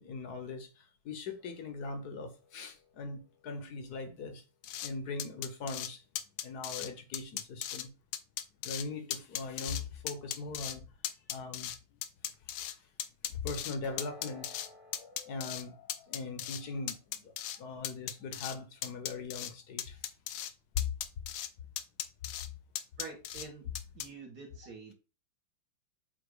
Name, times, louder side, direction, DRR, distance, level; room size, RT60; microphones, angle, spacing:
voice 1, 0.0-4.4 4.8-6.0 6.4-7.9 8.6-10.9 11.3-11.7 12.5-12.9 13.3-14.6 15.3-15.7 16.1-20.0 20.7-20.9, left 4 dB, 55° left, 1.3 m, -40 dB
sound 1, 1.4-4.5 13.8-17.7 18.1-18.3 18.9-19.0, left 2 dB, 15° left, 1.1 m, -57 dB
sound 2, 4.6-4.9 5.2-5.9 6.2-6.9 7.1-7.8 8.1-8.8 9.1-9.8 10.1-10.7 11.0-12.7 13.0-14.7 14.9-15.6 15.9-16.6 16.9-17.6 17.8-18.6 18.8-19.5 19.8-20.5 20.8-21.5 21.8-22.5 22.7-23.5 23.7-24.1, left 11 dB, 75° left, 1.4 m, -37 dB
voice 2, 23.0-24.9, right 4 dB, 50° right, 2.1 m, -47 dB
7.8 x 2.8 x 4.8 m
omnidirectional pair, 2.3 m